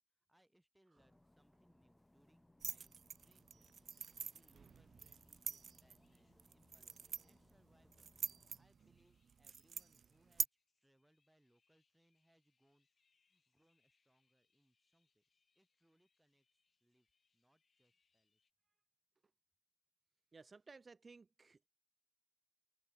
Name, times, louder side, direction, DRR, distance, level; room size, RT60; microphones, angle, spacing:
voice 1, 0.0-12.9 13.3-15.2 15.5-17.1 17.3-18.4, right 1 dB, 10° right, 6.6 m, -76 dB
sound 1, 0.9-8.6, left 1 dB, 20° left, 6.6 m, -70 dB
sound 2, 2.6-10.5, right 6 dB, 85° right, 0.4 m, -46 dB
sound 3, 3.5-18.5, left 5 dB, 70° left, 7.6 m, -87 dB
voice 2, 20.3-21.7, right 4 dB, 55° right, 1.3 m, -59 dB
open air
cardioid pair, 55°, 0 cm